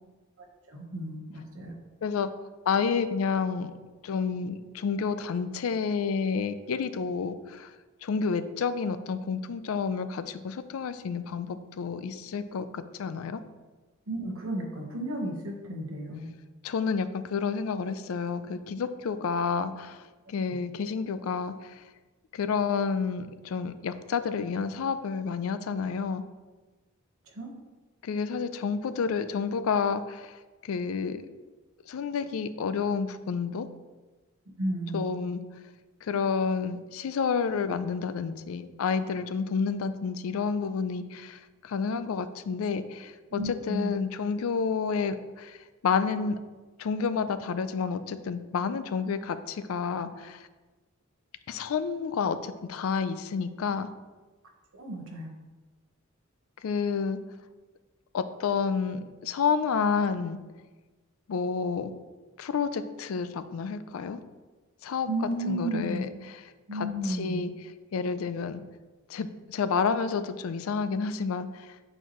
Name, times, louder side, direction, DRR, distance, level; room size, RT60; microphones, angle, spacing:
voice 1, 0.7-1.7 14.1-16.3 27.3-27.5 34.6-35.0 43.3-44.0 54.7-55.3 65.1-66.1 66.7-67.4, right 1 dB, 75° right, 1 dB, 1.1 m, -33 dB
voice 2, 2.7-3.7 4.0-7.7 8.0-13.4 16.6-21.8 22.3-26.2 28.0-30.3 30.6-31.3 31.9-33.7 34.9-35.4 36.0-45.6 45.8-46.4 46.8-50.4 51.5-53.9 56.6-57.2 58.1-60.4 61.3-61.9 62.4-64.2 64.8-66.1 66.7-67.5 67.9-68.6 69.1-71.7, left 5 dB, 80° left, 12 dB, 0.4 m, -30 dB
7.8 x 4.4 x 3.0 m, 1.3 s
head